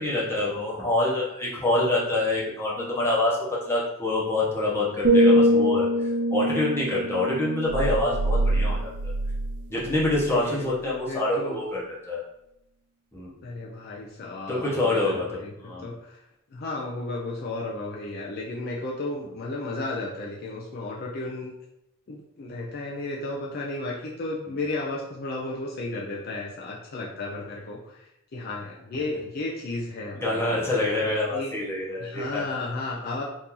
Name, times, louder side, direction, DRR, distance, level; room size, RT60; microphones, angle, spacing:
voice 1, 0.0-5.9 6.3-9.1 9.7-12.2 13.1-13.3 14.5-15.9 30.1-32.6, left 2 dB, 10° left, -6 dB, 0.8 m, -26 dB
sound 1, 5.0-9.0 9.4-9.7, equal, 55° right, 0.8 m, -23 dB
sound 2, 7.7-10.4, right 2 dB, 90° right, 0.3 m, -27 dB
voice 2, 10.2-11.6 13.4-16.2 16.5-21.5 22.1-28.0 28.3-30.6 31.1-31.5 31.9-33.2, left 2 dB, 45° left, -2 dB, 0.4 m, -34 dB
2.9 x 2.6 x 3.7 m, 0.84 s
head